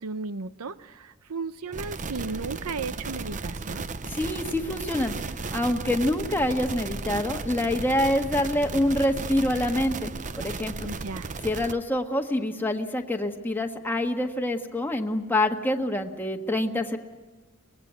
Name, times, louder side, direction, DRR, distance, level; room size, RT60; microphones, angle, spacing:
voice 1, 0.0-3.9 10.8-11.3, right 4 dB, 80° right, 14 dB, 0.7 m, -35 dB
sound 1, 1.7-11.7, right 3 dB, 35° right, 0.7 m, -35 dB
voice 2, 4.1-5.1 5.5-10.1 10.4-10.9 11.4-17.0, left 1 dB, 10° left, 2 dB, 1.5 m, -26 dB
24.5 x 20.0 x 9.4 m, 1.2 s
head